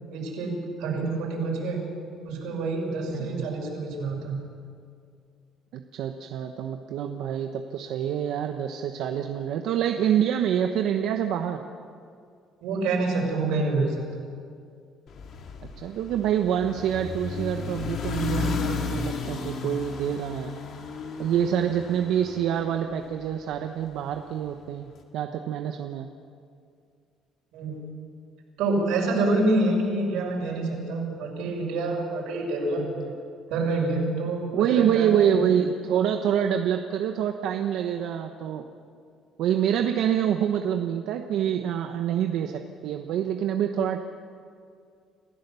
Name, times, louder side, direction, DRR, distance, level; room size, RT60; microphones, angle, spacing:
voice 1, 0.1-1.8 2.2-4.4 12.6-14.0 27.5-27.8 28.6-32.8 33.5-35.1, right 2 dB, 90° right, -1 dB, 6.3 m, -27 dB
voice 2, 3.1-3.5 5.7-11.6 15.8-20.5 21.2-26.1 32.8-33.1 34.5-38.6 39.4-44.0, right 9 dB, 70° right, 5 dB, 1.0 m, -26 dB
sound 1, 15.1-23.4, left 5 dB, 50° left, 2.2 m, -34 dB
28.0 x 15.5 x 7.0 m, 2.3 s
cardioid pair, 155°, 0 cm